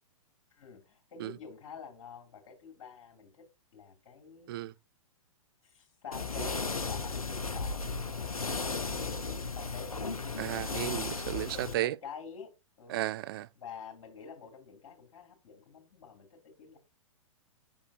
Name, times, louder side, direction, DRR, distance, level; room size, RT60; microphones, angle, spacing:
voice 1, 0.5-3.4 3.7-4.5 5.6-10.1 11.3-12.5 12.8-13.0 13.5-16.8, left 6 dB, 55° left, 2.6 m, -48 dB
sound 1, 6.1-11.7, left 4 dB, 90° left, 0.7 m, -35 dB
voice 2, 10.4-11.9 12.9-13.5, right 15 dB, 40° right, 0.4 m, -34 dB
7.1 x 6.3 x 2.5 m
figure-of-eight pair, 110°, 18 cm